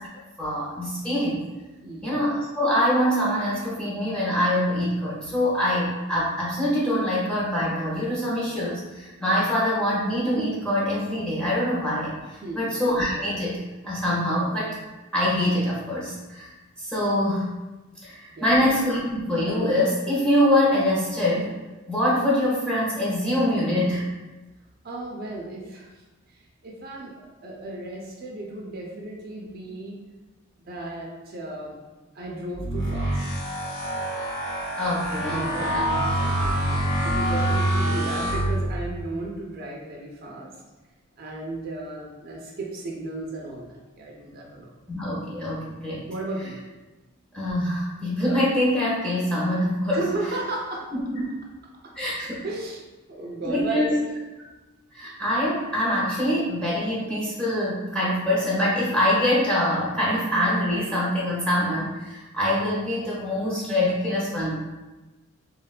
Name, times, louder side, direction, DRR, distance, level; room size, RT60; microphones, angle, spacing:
voice 1, 0.4-1.4 2.0-13.5 13.8-14.7 15.1-16.5 16.8-17.5 18.0-21.5 21.9-24.0 34.8-35.8 44.9-46.0 47.3-50.0 50.9-51.2 51.9-52.5 53.4-53.9 54.9-64.5, left 1 dB, 5° left, -8 dB, 0.6 m, -24 dB
voice 2, 1.8-2.2 12.4-12.7 18.3-18.6 24.8-30.0 30.7-31.8 32.1-33.3 35.3-40.5 41.2-44.7 46.1-46.6 49.9-50.9 52.4-52.8 53.1-54.1 55.0-55.1, right 2 dB, 45° right, -2 dB, 0.4 m, -34 dB
sound 1, 32.5-39.0, right 1 dB, 60° left, 0.9 m, -26 dB
3.3 x 2.1 x 2.3 m, 1.1 s
head